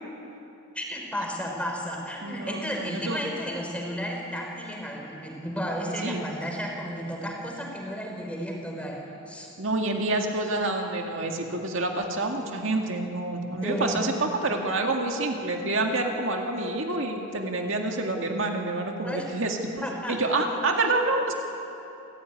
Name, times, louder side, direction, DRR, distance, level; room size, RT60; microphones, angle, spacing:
voice 1, 0.7-9.5 13.6-14.0 19.0-19.2 19.8-20.2, equal, 5° left, 0 dB, 3.8 m, -33 dB
voice 2, 2.2-3.2 6.0-6.2 9.6-21.3, right 2 dB, 60° right, 2 dB, 2.1 m, -28 dB
28.0 x 15.0 x 9.7 m, 2.9 s
head